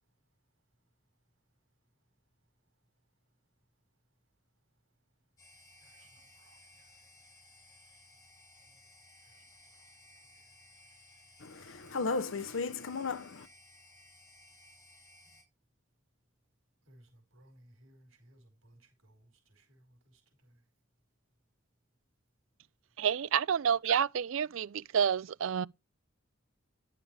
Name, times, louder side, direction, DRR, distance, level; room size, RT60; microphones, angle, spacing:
sound 1, 5.4-15.4, left 1 dB, 20° left, 5.4 m, -59 dB
voice 1, 5.8-6.9 9.2-10.5 16.8-20.6, right 1 dB, 90° right, 4.8 m, -63 dB
voice 2, 11.4-13.5, left 4 dB, 70° left, 0.8 m, -35 dB
voice 3, 23.0-25.7, right 7 dB, 70° right, 0.4 m, -29 dB
11.0 x 6.8 x 3.4 m
head